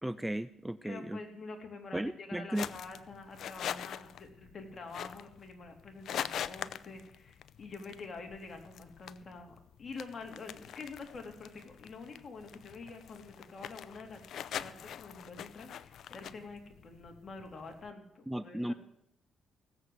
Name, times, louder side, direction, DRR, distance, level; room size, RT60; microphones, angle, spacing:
voice 1, 0.0-1.2 1.9-2.7 18.3-18.7, right 1 dB, 10° right, 16 dB, 0.4 m, -35 dB
voice 2, 0.8-18.7, left 3 dB, 40° left, 3 dB, 3.3 m, -47 dB
sound 1, 2.5-17.9, left 9 dB, 70° left, 0.6 m, -44 dB
17.5 x 7.7 x 8.0 m, 0.78 s
cardioid pair, 90°, 0 cm